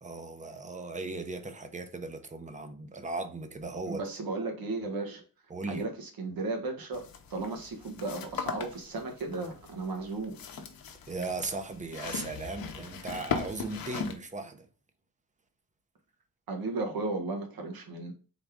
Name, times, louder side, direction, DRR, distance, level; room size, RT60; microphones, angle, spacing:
voice 1, 0.0-4.0 5.5-5.9 11.1-14.7, right 3 dB, 20° right, 0.6 m, -37 dB
voice 2, 3.9-5.2 5.7-7.0 7.3-10.4 16.5-18.1, right 3 dB, 75° right, 1.3 m, -35 dB
sound 1, 6.9-14.1, left 6 dB, 75° left, 0.8 m, -39 dB
3.9 x 3.6 x 3.4 m
wide cardioid pair, 150°, 36 cm